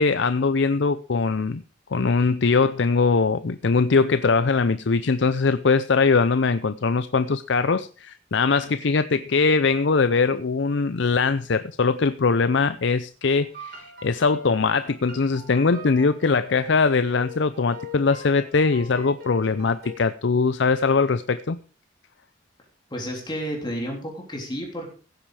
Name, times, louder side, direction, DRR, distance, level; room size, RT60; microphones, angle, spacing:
voice 1, 0.0-1.6 1.9-21.6, left 4 dB, 65° left, 12 dB, 0.6 m, -21 dB
sound 1, 13.4-19.9, left 2 dB, 50° right, 5.1 m, -42 dB
voice 2, 22.9-24.9, equal, 25° left, 0 dB, 3.3 m, -31 dB
15.5 x 8.9 x 4.8 m, 0.37 s
head